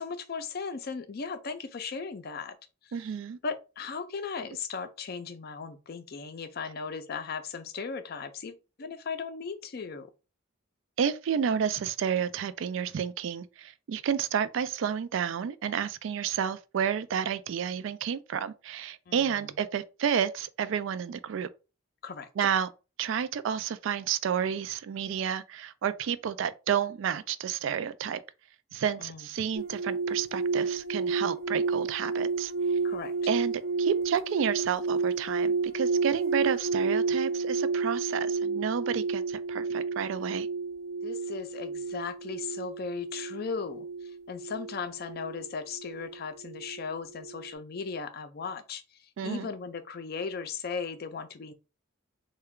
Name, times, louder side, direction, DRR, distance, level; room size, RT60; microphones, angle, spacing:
voice 1, 0.0-2.6 2.8-2.9 3.4-10.1 19.1-19.5 22.0-22.3 29.0-29.3 32.8-33.1 41.0-51.5, left 5 dB, 50° left, 0.4 m, -37 dB
voice 2, 2.9-3.4 11.0-21.5 22.4-22.7 23.0-28.2 28.7-32.5 33.3-40.5 49.2-49.5, right 8 dB, 65° right, 0.3 m, -30 dB
sound 1, 29.6-46.9 47.1-47.5, right 4 dB, 85° right, 0.7 m, -31 dB
3.2 x 2.2 x 3.6 m
head